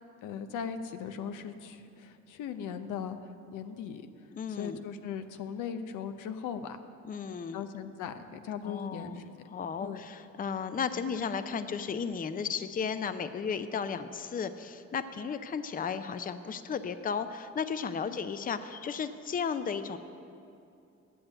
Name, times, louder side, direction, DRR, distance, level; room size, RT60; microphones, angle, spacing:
voice 1, 0.2-3.2 3.5-4.1 4.6-6.8 7.5-9.2 9.8-10.0, left 7 dB, 90° left, 9 dB, 0.7 m, -38 dB
voice 2, 4.4-4.9 7.0-7.7 8.6-20.0, left 6 dB, 30° left, 11 dB, 0.5 m, -34 dB
8.7 x 7.8 x 8.9 m, 2.6 s
cardioid pair, 90°, 30 cm